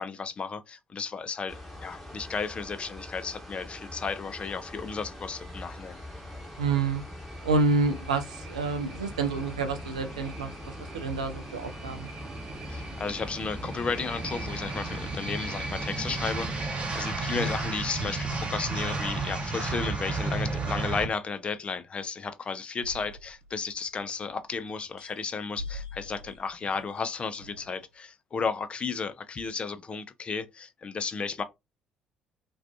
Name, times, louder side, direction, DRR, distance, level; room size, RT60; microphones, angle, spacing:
voice 1, 0.0-6.0 12.6-31.4, left 5 dB, 35° left, 0.4 m, -34 dB
sound 1, 1.5-16.6, left 1 dB, 5° left, 1.2 m, -42 dB
sound 2, 5.3-21.1, right 3 dB, 30° right, 0.8 m, -35 dB
voice 2, 6.6-7.0 7.4-10.5 10.9-12.1 17.3-17.5, right 3 dB, 80° right, 0.3 m, -28 dB
sound 3, 22.8-24.4 24.8-27.8, left 1 dB, 90° left, 0.5 m, -44 dB
2.4 x 2.3 x 2.2 m
figure-of-eight pair, 50°, 3 cm